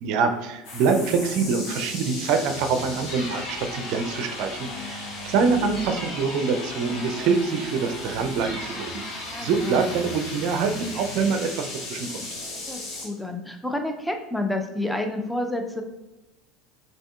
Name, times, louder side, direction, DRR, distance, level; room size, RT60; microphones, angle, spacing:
voice 1, 0.0-12.3, right 5 dB, 60° right, 7 dB, 0.4 m, -25 dB
sound 1, 0.6-13.1, left 2 dB, 60° left, 1.1 m, -35 dB
voice 2, 9.3-9.9 12.7-15.8, left 1 dB, 5° left, 4 dB, 0.5 m, -30 dB
6.1 x 2.6 x 2.4 m, 1.0 s
hypercardioid pair, 75°, 0 cm